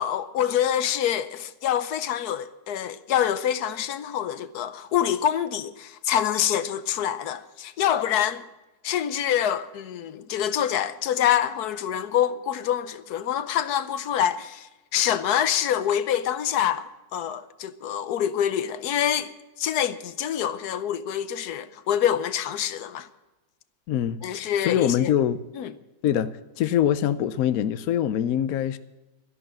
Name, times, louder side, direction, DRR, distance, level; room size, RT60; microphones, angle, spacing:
voice 1, 0.0-8.4 8.8-19.3 19.6-23.1 24.2-25.1 25.5-25.7, left 10 dB, 90° left, 1.3 m, -26 dB
voice 2, 23.9-25.5 26.0-28.8, left 10 dB, 75° left, 1.1 m, -24 dB
13.0 x 11.0 x 7.5 m
omnidirectional pair, 1.6 m